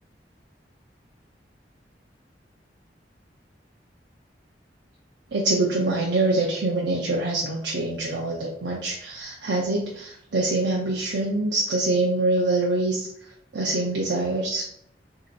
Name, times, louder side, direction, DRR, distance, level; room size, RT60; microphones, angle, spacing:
voice 1, 5.3-13.1 13.5-14.6, right 2 dB, 75° right, -3 dB, 0.8 m, -25 dB
6.8 x 2.9 x 2.6 m, 0.70 s
head